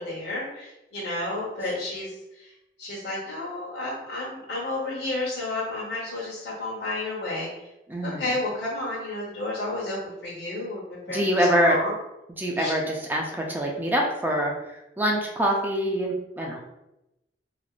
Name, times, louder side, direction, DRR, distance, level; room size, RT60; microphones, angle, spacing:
voice 1, 0.0-2.5 2.8-7.5 8.0-11.9 12.6-12.7, left 2 dB, 75° left, -7 dB, 0.9 m, -31 dB
voice 2, 7.9-8.3 11.1-11.8 12.4-16.6, equal, 10° right, -1 dB, 0.4 m, -25 dB
3.3 x 2.4 x 2.4 m, 0.92 s
head